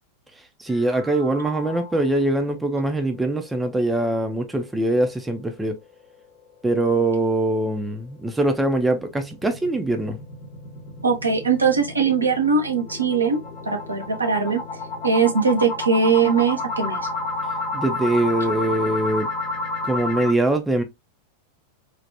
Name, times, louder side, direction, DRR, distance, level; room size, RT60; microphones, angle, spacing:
voice 1, 0.6-5.8 6.6-10.2 17.7-19.3 19.8-20.8, right 2 dB, 10° right, 0.6 m, -22 dB
sound 1, 0.7-2.2 2.6-2.7 3.1-3.2 3.6-3.7 8.5-20.3, left 2 dB, 35° left, 1.0 m, -31 dB
voice 2, 11.0-13.4 13.6-14.6 15.0-17.1, right 5 dB, 80° right, 0.8 m, -20 dB
3.3 x 2.4 x 2.7 m
figure-of-eight pair, 90°, 0 cm